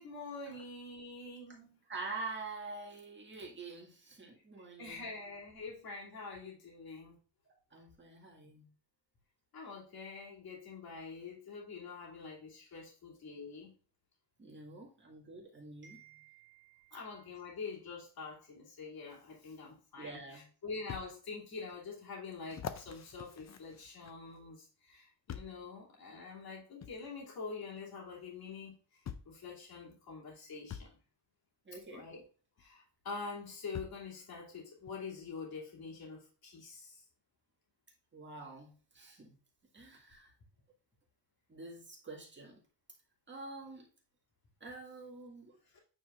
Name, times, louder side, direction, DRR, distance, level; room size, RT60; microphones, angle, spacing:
voice 1, 0.0-1.8 4.8-7.2 9.5-13.7 16.9-31.0 31.9-32.2 32.6-37.0, left 4 dB, 55° left, -4 dB, 2.9 m, -46 dB
voice 2, 1.9-5.1 7.7-8.7 14.4-17.1 20.0-20.5 31.7-32.1 38.1-39.3 39.7-40.3 41.5-42.6 43.3-43.9 44.6-45.6, right 3 dB, 25° right, -2 dB, 1.8 m, -47 dB
sound 1, 19.8-19.9 20.9-21.1 21.7-21.8 22.5-24.4 25.3-25.6 26.8-27.0 28.2-28.3 29.1-29.4 30.7-30.9 32.6-32.7 33.7-34.1 34.9-35.0, left 8 dB, 40° left, 0.5 m, -45 dB
8.7 x 4.8 x 2.5 m, 0.40 s
wide cardioid pair, 170°, 44 cm